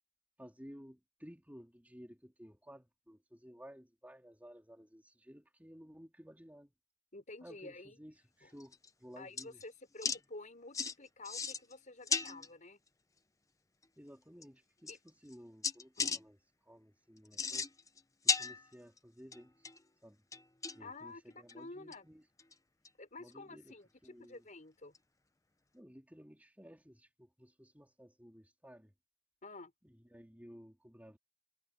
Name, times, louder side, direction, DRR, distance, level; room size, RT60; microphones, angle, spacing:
voice 1, 0.4-6.7 7.4-9.6 14.0-17.7 18.2-19.7 20.0-20.2 20.7-22.3 23.2-23.7 24.0-24.4 25.7-28.9 29.8-31.2, equal, 10° right, 3.4 m, -55 dB
voice 2, 7.1-8.0 8.4-8.5 9.2-12.8 14.9-15.0 16.0-16.2 20.8-22.0 23.0-24.9 29.4-29.7, left 2 dB, 40° left, 5.7 m, -50 dB
sound 1, 8.6-8.9 9.4-9.6 10.0-10.2 10.7-10.9 11.2-11.7 12.1-12.5 13.8-13.9 14.4-14.5 14.9-15.3 15.6-16.2 17.2-18.0 18.3-19.0 19.3-19.8 20.3-20.9 21.5-21.6 21.9-22.0 22.4-22.5 22.8-22.9 24.9-25.0, left 5 dB, 15° left, 0.8 m, -35 dB
head